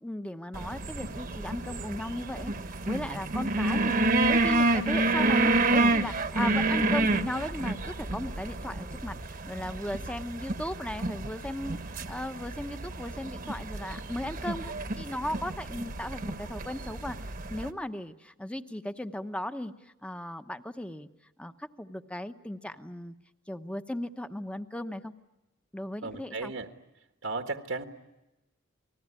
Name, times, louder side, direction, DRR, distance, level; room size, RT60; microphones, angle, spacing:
voice 1, 0.0-17.2 17.5-19.7 20.0-21.1 21.4-23.1 23.5-25.1 25.7-26.5, left 1 dB, 5° left, 9 dB, 0.9 m, -37 dB
sound 1, 0.5-17.7, right 2 dB, 45° right, 1.2 m, -29 dB
voice 2, 26.0-26.7 27.2-27.9, right 3 dB, 80° right, 5 dB, 1.7 m, -34 dB
29.0 x 20.0 x 9.8 m, 0.99 s
head